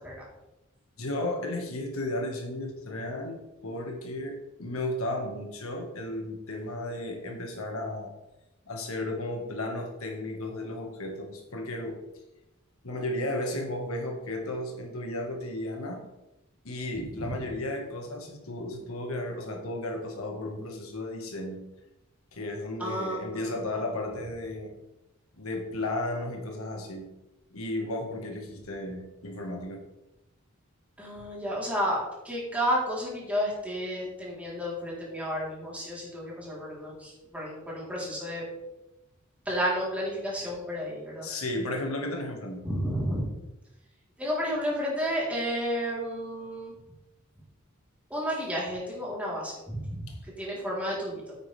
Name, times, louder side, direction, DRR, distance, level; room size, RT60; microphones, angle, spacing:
voice 1, 1.0-8.1 8.7-12.0 12.8-16.0 16.6-21.6 22.3-24.7 25.4-27.1 27.5-29.9 41.2-42.6 50.1-50.2, left 1 dB, 85° left, 3 dB, 1.8 m, -34 dB
voice 2, 22.8-23.6 31.0-32.0 32.2-38.4 39.5-41.3 42.6-43.2 44.2-46.7 48.1-50.1 50.4-51.2, equal, 5° right, -6 dB, 3.8 m, -31 dB
10.0 x 8.8 x 3.5 m, 0.94 s
head